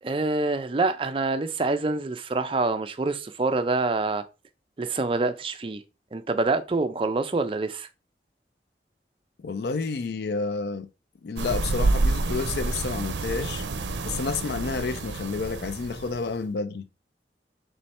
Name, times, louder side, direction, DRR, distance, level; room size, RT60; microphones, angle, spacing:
voice 1, 0.0-4.2 4.8-5.8 6.1-7.9, right 3 dB, 30° right, 0.4 m, -26 dB
voice 2, 9.4-10.9 11.2-13.7 14.0-16.9, left 4 dB, 65° left, 0.4 m, -30 dB
sound 1, 11.4-16.3, right 3 dB, 90° right, 0.5 m, -28 dB
3.2 x 3.1 x 4.2 m
head